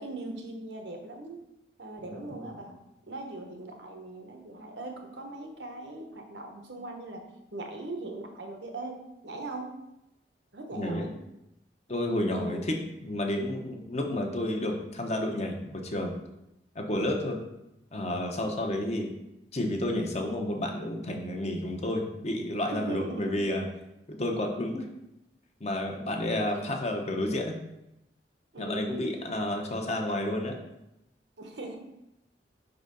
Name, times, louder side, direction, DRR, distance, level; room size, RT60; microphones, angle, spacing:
voice 1, 0.0-1.4 1.8-2.8 3.1-7.2 7.5-9.7 10.5-11.1 12.3-12.6 22.7-23.3 26.5-26.7 28.5-29.1 29.5-29.6 31.4-31.8, right 2 dB, 75° right, 3 dB, 1.1 m, -40 dB
voice 2, 2.0-2.5 10.7-11.1 11.9-16.1 16.7-17.4 17.9-19.1 19.5-23.6 24.2-24.9 25.6-27.5 28.6-30.6, left 1 dB, 40° left, 3 dB, 0.9 m, -31 dB
5.6 x 4.0 x 5.3 m, 0.88 s
head